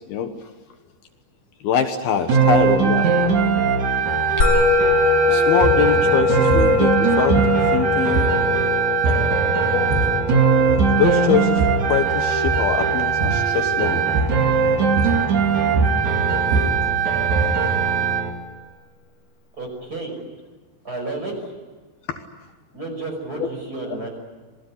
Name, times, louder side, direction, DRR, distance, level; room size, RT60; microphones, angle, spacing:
voice 1, 1.6-3.1 5.3-7.4 7.7-8.3 9.7-10.1 11.0-14.0 22.1-22.2 23.4-23.5, left 7 dB, 70° left, 6 dB, 3.1 m, -23 dB
sound 1, 2.3-18.3, right 6 dB, 50° right, 3.0 m, -20 dB
Musical instrument, 4.4-15.0, left 4 dB, 25° left, 5.9 m, -23 dB
sound 2, 5.5-5.9 6.5-6.8 7.3-7.8 8.1-8.6 9.0-9.3 9.7-10.3 10.7-11.1 11.4-11.9 12.3-12.7 13.2-13.5 14.2-14.5 15.0-15.3 15.6-17.7, right 2 dB, 70° right, 4.2 m, -23 dB
voice 2, 19.6-20.2 20.8-21.3 22.7-24.1, right 2 dB, 20° right, 3 dB, 6.2 m, -31 dB
28.0 x 20.0 x 9.9 m, 1.3 s
omnidirectional pair, 4.8 m